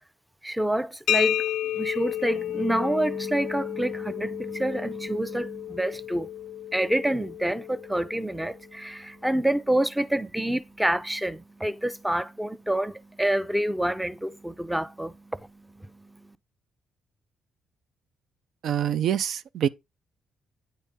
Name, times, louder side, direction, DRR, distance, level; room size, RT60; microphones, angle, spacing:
voice 1, 0.4-1.4 1.7-6.3 6.7-15.4 15.8-15.9, right 1 dB, 5° right, 0.5 m, -27 dB
sound 1, 1.1-8.6, left 12 dB, 75° left, 0.3 m, -32 dB
voice 2, 18.6-19.7, right 9 dB, 70° right, 0.4 m, -25 dB
9.2 x 4.1 x 3.7 m
cardioid pair, 90°, 0 cm